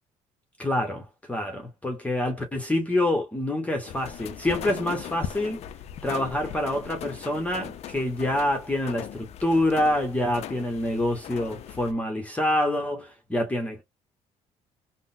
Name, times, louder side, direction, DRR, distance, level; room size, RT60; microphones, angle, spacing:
voice 1, 0.6-5.6 6.0-13.8, left 1 dB, 10° left, 0.8 m, -26 dB
sound 1, 3.9-11.9, left 10 dB, 55° left, 0.4 m, -39 dB
3.7 x 2.0 x 2.4 m
cardioid pair, 115°, 13 cm